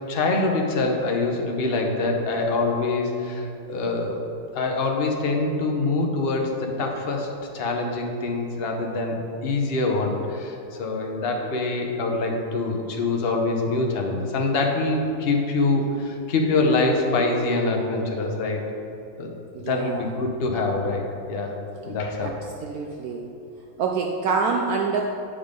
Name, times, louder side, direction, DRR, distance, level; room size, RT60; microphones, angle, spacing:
voice 1, 0.1-4.2 4.5-18.6 19.2-19.3 19.6-21.0 21.3-21.6 21.8-22.3, left 3 dB, 60° left, 1 dB, 0.6 m, -25 dB
voice 2, 19.5-20.1 22.2-22.3 22.6-23.3 23.8-25.0, right 5 dB, 85° right, 1 dB, 0.8 m, -26 dB
8.7 x 5.3 x 5.2 m, 2.8 s
omnidirectional pair, 2.3 m